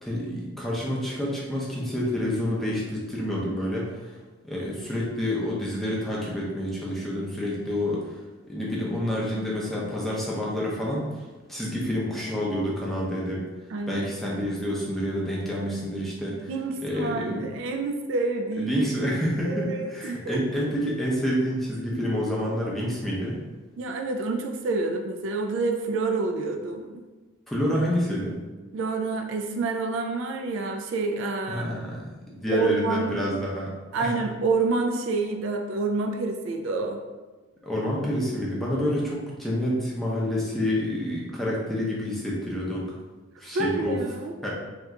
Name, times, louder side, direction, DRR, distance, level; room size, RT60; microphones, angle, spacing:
voice 1, 0.0-4.2 4.5-8.1 8.5-11.1 11.5-13.5 13.9-16.5 16.8-17.5 18.5-23.4 27.5-28.4 31.5-33.7 34.0-34.1 37.6-42.9 43.4-44.0 44.4-44.5, equal, ahead, -5 dB, 0.6 m, -28 dB
voice 2, 13.7-14.0 16.3-19.2 19.4-20.4 23.8-27.0 28.7-31.7 32.5-33.2 33.9-37.0 43.5-44.3, right 3 dB, 65° right, 4 dB, 0.3 m, -28 dB
2.8 x 2.2 x 3.5 m, 1.3 s
head